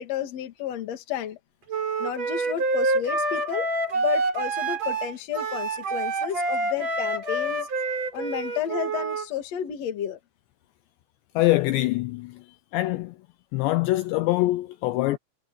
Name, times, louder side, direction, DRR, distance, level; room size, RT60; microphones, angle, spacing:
voice 1, 0.0-1.4 2.0-7.7 8.1-10.2, left 10 dB, 55° left, 2.0 m, -32 dB
Wind instrument woodwind instrument, 1.7-9.2, right 2 dB, 35° right, 5.2 m, -27 dB
voice 2, 11.4-13.2 13.5-15.2, left 18 dB, 85° left, 2.5 m, -24 dB
omnidirectional pair, 6.0 m